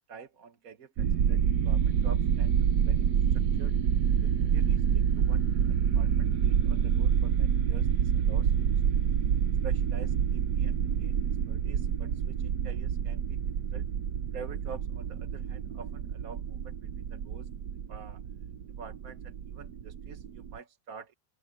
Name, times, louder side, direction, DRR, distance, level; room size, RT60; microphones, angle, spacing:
voice 1, 0.1-3.1 3.3-3.8 4.2-8.7 9.0-9.1 9.6-11.2 11.5-13.4 13.7-13.9 14.3-17.5 17.9-18.2 18.8-21.1, right 5 dB, 60° right, 1.8 m, -48 dB
sound 1, 1.0-20.6, right 8 dB, 80° right, 1.5 m, -27 dB
open air
omnidirectional pair, 1.7 m